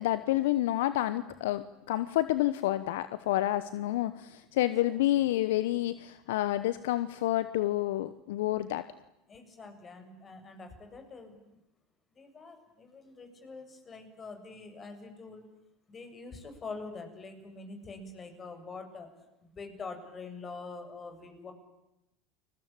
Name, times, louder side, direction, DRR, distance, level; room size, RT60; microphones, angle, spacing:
voice 1, 0.0-8.8, left 15 dB, 70° left, 14 dB, 1.0 m, -29 dB
voice 2, 4.6-5.2 9.3-11.6 12.1-15.5 15.9-19.1 19.4-21.5, left 4 dB, 30° left, 7 dB, 7.4 m, -45 dB
30.0 x 21.5 x 8.9 m, 0.88 s
hypercardioid pair, 80°, 0 cm